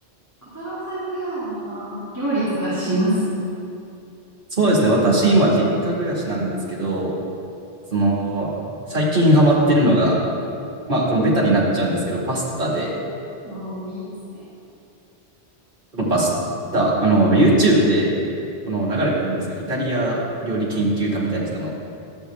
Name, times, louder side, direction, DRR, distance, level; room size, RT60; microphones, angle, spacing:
voice 1, 0.5-3.1 13.4-14.0, right 1 dB, 15° right, -13 dB, 2.3 m, -26 dB
voice 2, 4.5-7.1 7.9-8.5 8.9-10.2 10.9-12.9 15.9-16.3 16.7-18.1 18.7-21.7, right 1 dB, 50° right, -5 dB, 2.2 m, -19 dB
12.5 x 7.7 x 3.5 m, 2.7 s
omnidirectional pair, 1.2 m